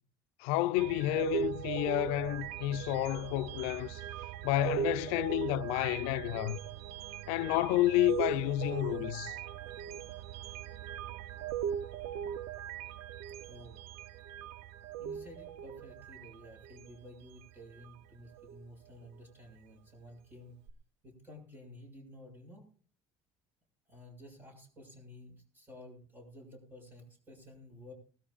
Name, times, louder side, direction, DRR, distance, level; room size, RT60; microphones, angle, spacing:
voice 1, 0.4-4.0 4.4-6.6 7.3-9.3, left 16 dB, 85° left, 0.5 m, -30 dB
sound 1, 0.8-18.0 18.4-18.6 20.7-20.8, right 9 dB, 85° right, 0.7 m, -39 dB
voice 2, 9.3-9.9 13.5-13.8 15.0-20.6 21.0-22.7 23.9-27.9, left 1 dB, 20° right, 6.7 m, -53 dB
21.0 x 13.5 x 2.5 m
cardioid pair, 145°, 10 cm